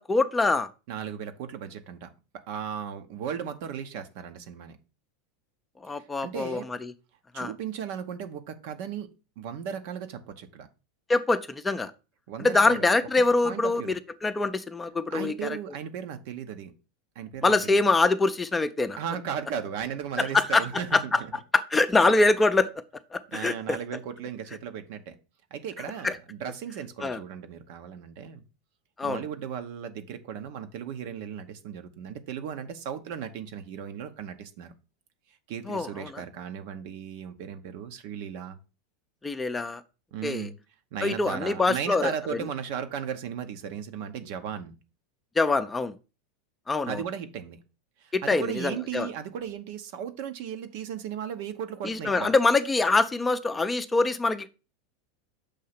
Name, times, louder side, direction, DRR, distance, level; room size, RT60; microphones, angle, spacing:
voice 1, 0.0-0.7 5.8-6.9 7.3-7.5 11.1-11.9 12.4-15.6 17.4-19.0 20.2-21.2 21.5-22.7 23.1-23.8 26.0-26.2 27.0-27.2 29.0-29.2 35.7-36.2 39.2-39.8 40.2-40.5 41.0-42.1 45.4-45.9 46.7-47.0 48.1-49.1 51.8-54.5, left 3 dB, 15° left, 0.6 m, -24 dB
voice 2, 0.9-4.8 5.9-6.7 7.3-10.7 12.3-12.9 13.4-14.0 15.1-16.7 17.2-17.8 19.0-21.3 23.3-25.2 25.5-28.4 29.0-34.7 35.5-38.6 40.1-40.5 40.9-44.8 46.9-47.6 48.0-52.3, right 8 dB, 65° right, 0.8 m, -36 dB
6.5 x 2.8 x 5.7 m
hypercardioid pair, 100°, 0 cm